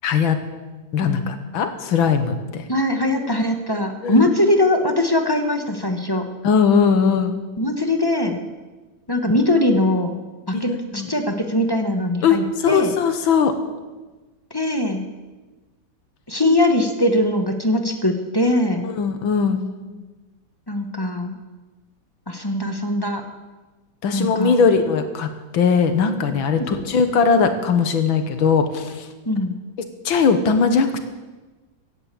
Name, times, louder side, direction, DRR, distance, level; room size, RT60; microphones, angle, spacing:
voice 1, 0.0-0.4 0.9-2.6 4.0-4.2 6.4-7.4 10.5-11.1 12.2-13.5 18.8-19.6 24.0-29.1 30.1-31.0, left 5 dB, 85° left, 8 dB, 2.1 m, -19 dB
voice 2, 1.0-1.3 2.7-6.2 7.6-8.4 9.1-12.9 14.5-15.1 16.3-18.9 20.7-21.3 22.3-23.2 24.1-24.6 26.6-26.8 29.2-29.6, left 1 dB, 15° left, 5 dB, 1.1 m, -21 dB
15.0 x 9.8 x 8.4 m, 1.2 s
omnidirectional pair, 2.1 m